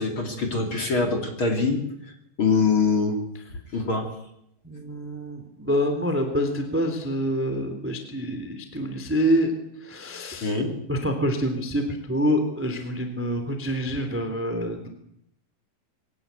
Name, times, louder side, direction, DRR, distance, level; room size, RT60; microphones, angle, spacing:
voice 1, 0.0-1.8 2.4-3.2 3.7-4.1 10.4-10.7, left 4 dB, 35° left, 3 dB, 3.1 m, -23 dB
voice 2, 4.6-9.5 9.8-10.5 10.9-14.9, equal, 5° right, 6 dB, 1.8 m, -26 dB
22.5 x 18.0 x 8.3 m, 0.76 s
omnidirectional pair, 5.0 m